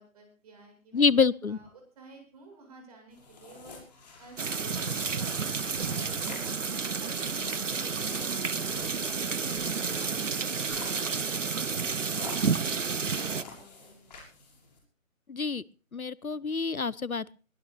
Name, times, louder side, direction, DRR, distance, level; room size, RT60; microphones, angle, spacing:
voice 1, 0.0-1.1 1.5-8.3 8.6-14.2, right 2 dB, 25° right, 3 dB, 7.9 m, -53 dB
voice 2, 0.9-1.6 15.3-15.6 15.9-17.3, left 5 dB, 90° left, 22 dB, 1.1 m, -26 dB
sound 1, 3.1-14.8, left 4 dB, 30° left, 6.8 m, -49 dB
sound 2, 4.4-10.4 10.8-10.9, left 1 dB, ahead, 2.7 m, -53 dB
sound 3, 4.4-13.4, right 5 dB, 60° right, 1.2 m, -31 dB
22.5 x 18.5 x 2.5 m, 0.36 s
figure-of-eight pair, 155°, 41 cm